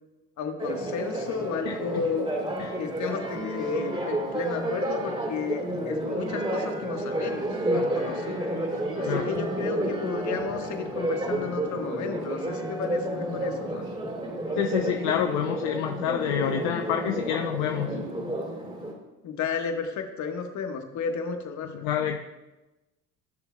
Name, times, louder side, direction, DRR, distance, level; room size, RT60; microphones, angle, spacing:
voice 1, 0.4-2.3 2.8-8.5 9.0-13.8 19.2-21.9, left 5 dB, 55° left, 4 dB, 1.4 m, -33 dB
Church bell, 0.6-18.9, right 1 dB, 15° right, 2.7 m, -30 dB
voice 2, 1.7-2.0 2.6-2.8 9.1-9.3 14.6-18.1 21.7-22.2, left 10 dB, 75° left, 4 dB, 0.7 m, -28 dB
16.5 x 6.8 x 2.3 m, 1.1 s
hypercardioid pair, 70°, 35 cm